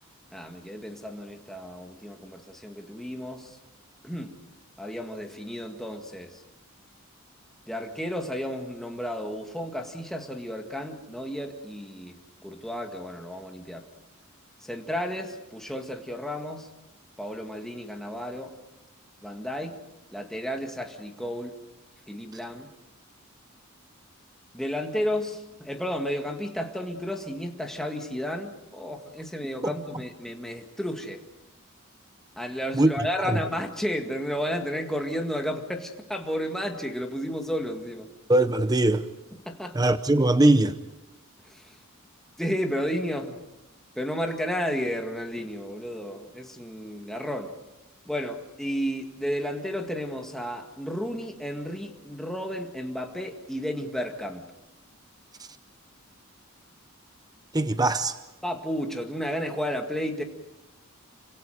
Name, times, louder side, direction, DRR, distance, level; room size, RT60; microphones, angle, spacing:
voice 1, 0.3-3.6 4.0-4.4 4.8-6.4 7.7-13.8 14.7-16.7 17.2-18.5 19.2-19.8 20.1-21.6 22.1-22.7 24.5-31.2 32.4-38.1 39.5-39.8 41.5-41.7 42.4-43.4 44.0-47.5 48.1-54.5 58.4-60.2, equal, ahead, 1.9 m, -32 dB
voice 2, 38.3-39.1 39.7-40.8 57.5-58.2, right 2 dB, 20° right, 0.7 m, -21 dB
28.0 x 25.5 x 5.1 m
head